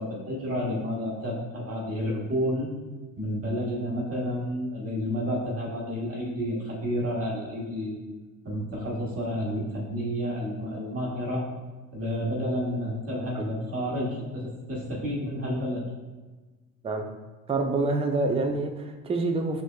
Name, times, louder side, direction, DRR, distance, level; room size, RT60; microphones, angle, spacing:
voice 1, 0.0-2.7 3.2-8.0 8.4-11.5 11.9-15.8, equal, 30° right, -4 dB, 1.3 m, -30 dB
voice 2, 17.5-19.6, right 3 dB, 15° right, 4 dB, 0.4 m, -27 dB
6.1 x 3.2 x 2.2 m, 1.3 s
hypercardioid pair, 70°, 46 cm